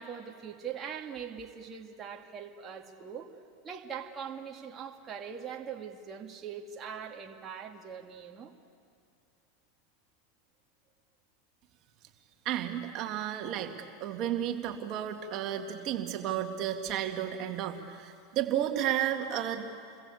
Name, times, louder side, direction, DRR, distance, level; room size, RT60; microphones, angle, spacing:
voice 1, 0.0-3.3 3.6-8.5, right 7 dB, 30° right, 1 dB, 2.1 m, -42 dB
voice 2, 12.4-13.7 14.0-19.7, right 10 dB, 50° right, 4 dB, 2.2 m, -32 dB
29.0 x 21.0 x 8.5 m, 2.4 s
hypercardioid pair, 110°, 0 cm